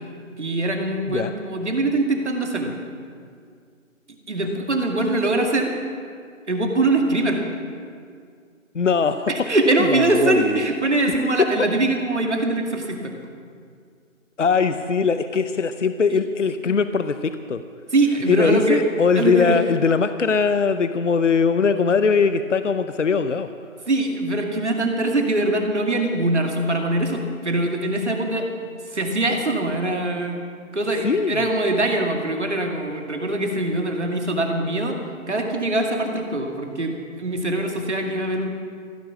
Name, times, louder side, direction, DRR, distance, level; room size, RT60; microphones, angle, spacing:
voice 1, 0.4-2.8 4.3-5.7 6.5-7.4 9.3-13.2 17.9-18.8 19.1-19.6 23.9-30.4 30.7-35.0 35.3-38.5, right 2 dB, 60° right, 3 dB, 2.3 m, -23 dB
voice 2, 8.7-9.3 9.8-10.6 14.4-17.6 18.3-23.5 31.0-31.5, left 5 dB, 65° left, 11 dB, 0.7 m, -21 dB
15.5 x 13.0 x 6.1 m, 2.1 s
figure-of-eight pair, 175°, 40 cm